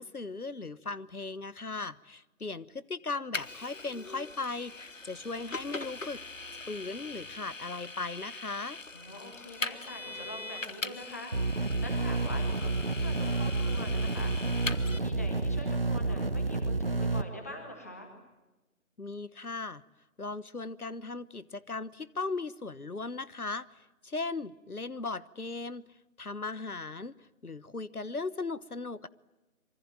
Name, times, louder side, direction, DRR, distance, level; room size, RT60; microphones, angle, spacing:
voice 1, 0.0-6.2 6.7-8.8 19.0-19.8 20.2-23.7 24.0-25.8 26.2-27.1 27.4-29.1, left 3 dB, 80° left, 18 dB, 1.3 m, -37 dB
Vehicle, 3.3-15.0, left 3 dB, 60° left, 1.4 m, -41 dB
voice 2, 8.9-11.5 11.8-14.5 14.8-18.1, left 1 dB, 10° left, 3 dB, 1.9 m, -44 dB
sound 1, 11.3-17.2, right 3 dB, 40° right, 1.2 m, -30 dB
26.5 x 24.5 x 9.0 m, 1.0 s
figure-of-eight pair, 165°, 44 cm